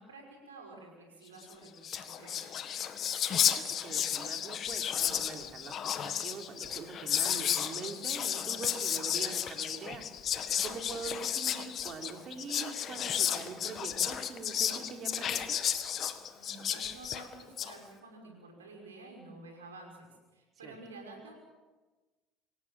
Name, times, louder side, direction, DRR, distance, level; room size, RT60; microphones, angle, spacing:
voice 1, 0.0-2.6 16.3-21.4, right 2 dB, 90° right, 2 dB, 5.8 m, -50 dB
Whispering, 1.5-1.6 1.8-17.7, left 9 dB, 50° left, 1.7 m, -33 dB
voice 2, 3.8-10.0 10.4-15.6 20.6-20.7, right 5 dB, 45° right, 4 dB, 3.7 m, -43 dB
26.5 x 17.0 x 7.7 m, 1.2 s
hypercardioid pair, 65°, 0 cm